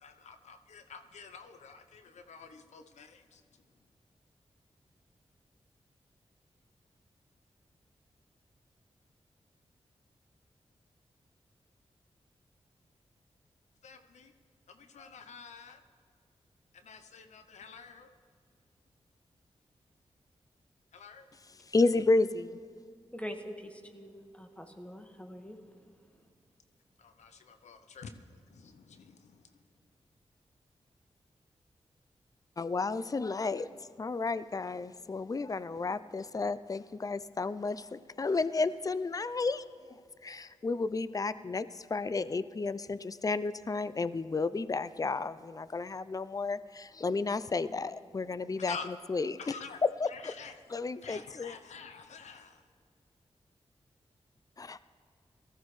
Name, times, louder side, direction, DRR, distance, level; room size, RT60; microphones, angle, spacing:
voice 1, 0.0-3.4 13.8-14.3 14.7-15.8 16.7-18.1 20.9-21.3 27.0-29.5 48.6-48.9 49.4-49.8 50.1-50.5 50.8-52.6, left 5 dB, 90° left, 8 dB, 0.7 m, -48 dB
voice 2, 21.7-22.6 32.6-33.7 34.0-39.7 40.2-48.8 49.1-49.4 49.8-50.3 50.7-51.6 54.6-54.8, left 3 dB, 30° left, 15 dB, 0.5 m, -32 dB
voice 3, 23.1-25.6, equal, 10° left, 5 dB, 1.7 m, -44 dB
18.5 x 14.0 x 3.2 m, 2.1 s
cardioid pair, 45°, 11 cm